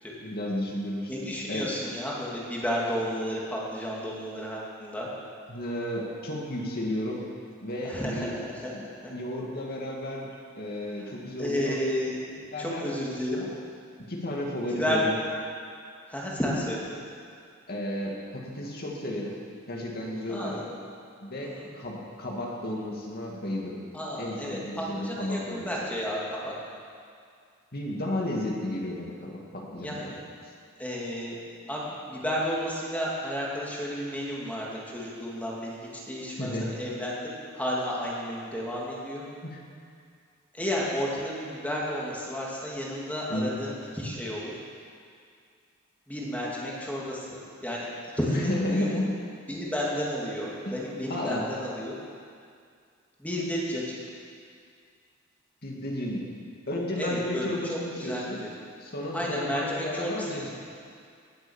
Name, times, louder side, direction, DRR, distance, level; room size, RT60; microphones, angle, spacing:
voice 1, 0.2-1.7 5.5-7.3 7.6-8.3 8.7-8.8 9.1-10.3 10.6-11.8 12.5-12.9 13.3-13.5 14.1-15.1 17.7-19.4 19.7-20.7 21.2-23.8 24.2-25.7 27.7-30.1 36.4-36.8 39.4-39.6 43.3-43.5 48.3-49.1 50.6-50.7 51.1-51.5 55.6-56.3 56.7-58.4 58.8-60.5, left 1 dB, 50° left, -2 dB, 2.3 m, -32 dB
voice 2, 1.1-5.1 7.8-8.7 9.0-9.1 11.0-11.1 11.4-12.2 12.6-13.4 14.7-15.0 16.1-16.9 20.3-20.6 21.4-21.7 23.9-26.5 29.8-30.0 30.8-31.4 31.7-35.8 36.1-37.1 37.5-39.2 40.5-44.5 46.1-47.9 48.1-49.0 49.5-52.0 53.2-54.0 57.0-58.5 59.1-60.5, equal, 10° left, -5 dB, 2.5 m, -32 dB
19.0 x 8.1 x 7.3 m, 2.2 s
head